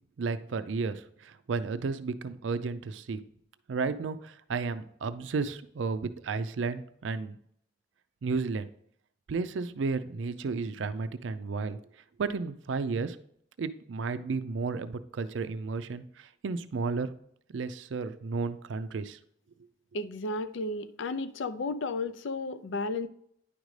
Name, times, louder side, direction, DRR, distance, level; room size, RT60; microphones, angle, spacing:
voice 1, 0.2-3.2 3.7-7.4 8.2-8.7 9.3-11.8 12.2-13.2 13.6-17.1 17.5-19.2, right 4 dB, 90° right, 0.4 m, -33 dB
voice 2, 19.9-23.1, left 2 dB, 90° left, 0.5 m, -33 dB
10.0 x 5.1 x 3.2 m
head